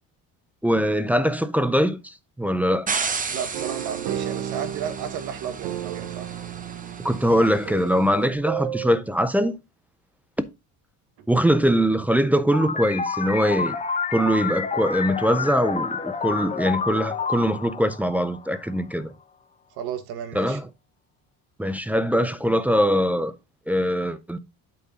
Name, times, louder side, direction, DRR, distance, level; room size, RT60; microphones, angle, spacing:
voice 1, 0.6-2.9 7.0-9.6 11.3-13.8 14.1-19.1 20.3-20.6 21.6-23.3 23.7-24.4, equal, 5° right, 0.4 m, -22 dB
sound 1, 2.9-8.0, right 5 dB, 20° right, 0.8 m, -33 dB
voice 2, 3.3-6.3 11.2-11.3 19.7-20.6, right 8 dB, 85° right, 1.6 m, -33 dB
sound 2, 3.5-9.0, right 11 dB, 65° right, 0.8 m, -33 dB
sound 3, 12.5-18.8, left 5 dB, 20° left, 1.0 m, -29 dB
8.3 x 4.5 x 4.0 m
cardioid pair, 150°, 37 cm